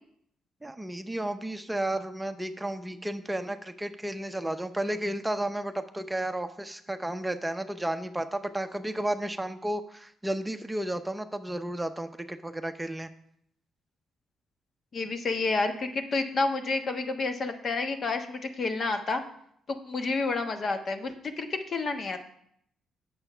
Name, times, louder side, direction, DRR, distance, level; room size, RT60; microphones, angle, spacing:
voice 1, 0.6-13.1, right 1 dB, 10° right, 8 dB, 0.7 m, -32 dB
voice 2, 14.9-19.2 19.7-22.2, left 3 dB, 45° left, 6 dB, 1.2 m, -30 dB
8.7 x 7.0 x 5.6 m, 0.69 s
cardioid pair, 90°, 0 cm